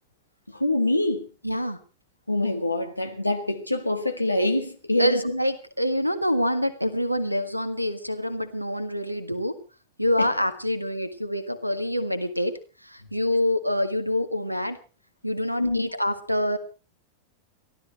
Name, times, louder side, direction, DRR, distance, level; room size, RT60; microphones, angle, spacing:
voice 1, 0.5-1.3 2.3-5.2 10.2-10.3 15.6-15.9, left 1 dB, 85° left, 1.9 m, -24 dB
voice 2, 1.4-1.8 5.0-9.5 10.0-12.5 12.9-14.8 15.2-16.6, left 1 dB, 90° right, 1.6 m, -26 dB
30.0 x 13.0 x 3.1 m
figure-of-eight pair, 90°, 0 cm